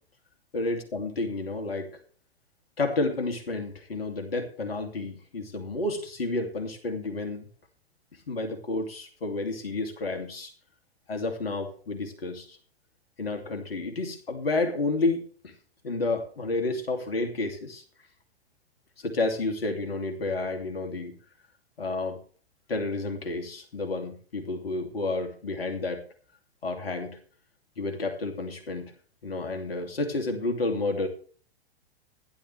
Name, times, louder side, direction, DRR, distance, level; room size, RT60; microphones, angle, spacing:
voice 1, 0.5-1.9 2.8-7.5 8.3-10.5 11.1-12.6 13.2-15.5 15.8-17.8 19.0-21.2 21.8-22.2 22.7-26.0 26.6-27.2 27.8-28.9 29.2-31.1, left 2 dB, 65° left, 5 dB, 2.9 m, -30 dB
16.0 x 11.0 x 3.4 m, 0.42 s
figure-of-eight pair, 105°, 31 cm